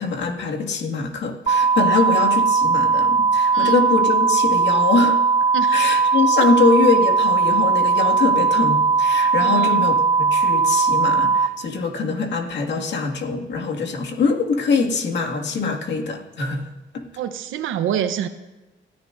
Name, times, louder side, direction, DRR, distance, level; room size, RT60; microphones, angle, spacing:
voice 1, 0.0-5.2 5.7-16.7 16.9-17.1, left 4 dB, 65° left, 1 dB, 2.2 m, -23 dB
sound 1, 1.5-11.5, right 5 dB, 30° right, 0.6 m, -18 dB
voice 2, 3.5-3.8 5.5-5.8 6.4-6.5 9.4-9.9 17.2-18.3, right 9 dB, 80° right, 9 dB, 1.0 m, -27 dB
24.5 x 14.0 x 2.7 m, 1.1 s
cardioid pair, 90°, 20 cm